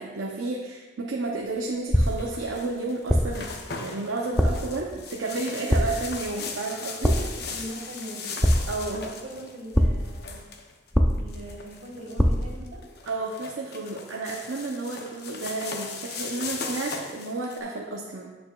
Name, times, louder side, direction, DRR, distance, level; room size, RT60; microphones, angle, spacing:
voice 1, 0.0-7.2 8.7-9.0 13.1-18.3, right 3 dB, 90° right, -2 dB, 0.7 m, -31 dB
sound 1, 1.9-2.4 3.1-3.5 4.4-4.8 5.7-6.1 7.0-7.5 8.4-9.0 9.7-10.2 10.9-11.5 12.2-12.6, equal, 5° left, 0.3 m, -23 dB
sound 2, 2.0-17.6, left 4 dB, 55° left, 0.6 m, -38 dB
voice 2, 7.1-10.4 11.2-12.8, equal, 75° right, -2 dB, 1.7 m, -41 dB
8.8 x 6.8 x 2.3 m, 1.3 s
head